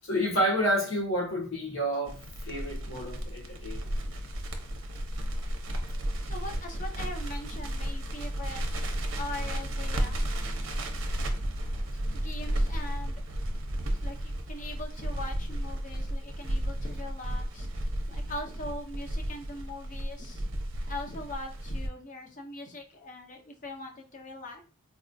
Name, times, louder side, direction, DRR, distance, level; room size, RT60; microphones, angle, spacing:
voice 1, 0.0-2.2 2.4-3.8, equal, 65° left, 1.1 m, -29 dB
Crackle, 2.0-21.9, right 1 dB, 60° right, 0.6 m, -33 dB
voice 2, 3.9-4.5 6.2-8.6 9.1-10.7 12.1-13.2 14.0-20.5 20.8-24.6, left 1 dB, 35° left, 0.6 m, -42 dB
4.1 x 2.3 x 2.6 m
head